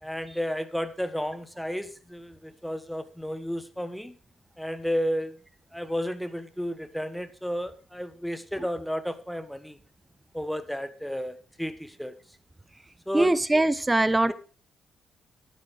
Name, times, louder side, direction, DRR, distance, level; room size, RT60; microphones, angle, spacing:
voice 1, 0.0-4.1 4.6-5.4 5.7-9.8 10.3-12.1 13.1-13.3 14.3-14.4, equal, ahead, 12 dB, 1.3 m, -32 dB
voice 2, 13.1-14.3, right 2 dB, 15° right, 16 dB, 0.9 m, -22 dB
11.5 x 10.0 x 4.9 m, 0.38 s
cardioid pair, 90°, 0 cm